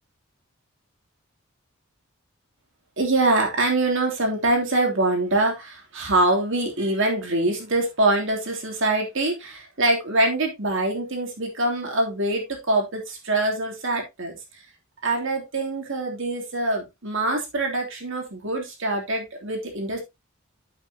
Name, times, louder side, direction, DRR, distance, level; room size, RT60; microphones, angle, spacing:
voice 1, 3.0-14.6 15.0-20.0, right 2 dB, 65° right, 2 dB, 3.2 m, -24 dB
8.8 x 7.9 x 2.9 m, 0.22 s
head